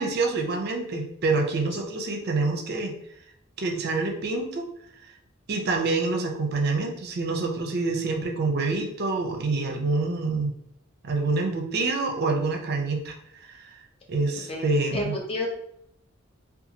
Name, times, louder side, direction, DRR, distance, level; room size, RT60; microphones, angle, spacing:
voice 1, 0.0-2.9 3.6-4.6 5.5-10.5 11.0-13.2 13.5-13.6 14.1-15.1, right 3 dB, 50° right, 2 dB, 0.5 m, -26 dB
voice 2, 14.9-15.5, left 1 dB, 30° left, 0 dB, 0.5 m, -29 dB
2.6 x 2.3 x 2.7 m, 0.73 s
head